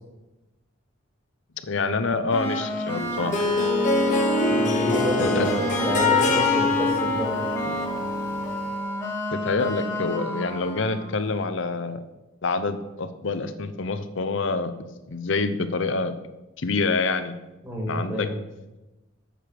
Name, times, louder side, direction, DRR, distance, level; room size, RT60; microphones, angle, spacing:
voice 1, 1.7-3.3 5.2-5.5 9.3-12.0 12.4-16.1 16.6-17.3 17.9-18.3, left 3 dB, 65° left, 10 dB, 0.6 m, -26 dB
sound 1, 2.3-11.1, equal, 10° left, 1.3 m, -30 dB
Harp, 3.0-8.7, left 3 dB, 35° left, 1.0 m, -24 dB
voice 2, 4.5-7.3 7.6-7.8 17.6-18.3, equal, 10° right, -2 dB, 1.9 m, -29 dB
7.6 x 6.6 x 5.0 m, 1.1 s
head